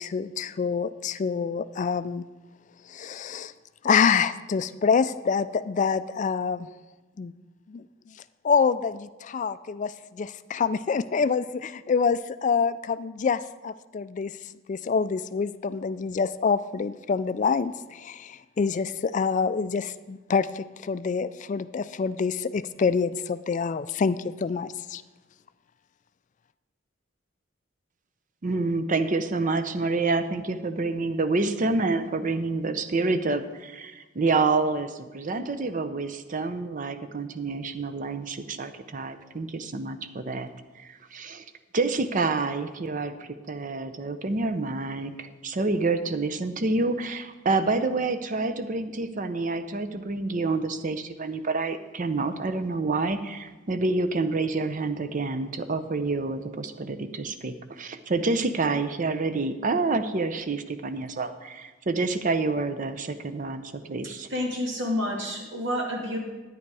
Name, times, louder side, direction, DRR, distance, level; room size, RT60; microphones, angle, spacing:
voice 1, 0.0-2.2 2.9-3.5 3.8-6.7 7.2-7.3 7.7-7.8 8.4-14.3 14.7-25.0, left 5 dB, 40° left, 14 dB, 0.3 m, -26 dB
voice 2, 28.4-40.5 40.7-41.4 41.7-64.3, right 3 dB, 40° right, 10 dB, 0.6 m, -28 dB
voice 3, 64.3-66.2, left 1 dB, 60° right, -1 dB, 2.3 m, -29 dB
10.0 x 9.3 x 4.7 m, 1.2 s
head